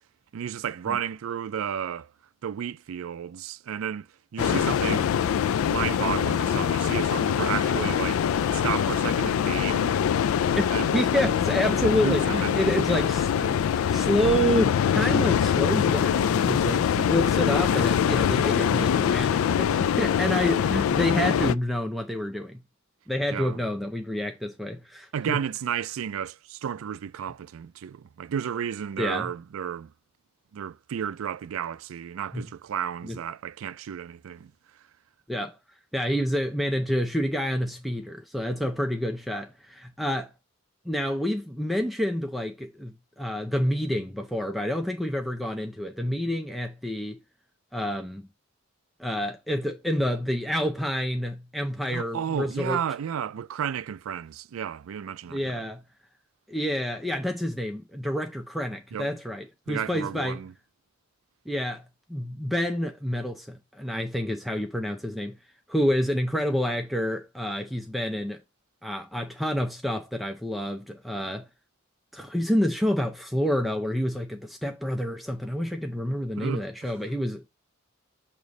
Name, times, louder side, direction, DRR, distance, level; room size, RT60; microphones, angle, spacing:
voice 1, 0.3-2.1 2.4-5.1 5.4-8.2 8.5-10.0 10.6-11.0 11.6-11.8 12.0-12.7 13.4-13.6 23.3-23.6 25.1-29.9 30.5-34.5 51.9-55.6 58.9-59.1 59.7-60.5 76.4-76.6, right 8 dB, 80° right, 0.4 m, -32 dB
sound 1, 4.4-21.5, left 8 dB, 80° left, 0.3 m, -24 dB
voice 2, 10.9-22.6 23.1-25.4 29.0-29.3 32.3-32.4 33.0-33.2 35.3-35.6 35.9-40.3 40.9-47.2 47.7-48.2 49.0-52.8 55.3-55.8 56.5-60.4 61.5-61.8 62.1-65.4 65.7-68.4 68.8-71.5 72.1-77.5, equal, ahead, 0.5 m, -28 dB
6.5 x 3.0 x 5.2 m
head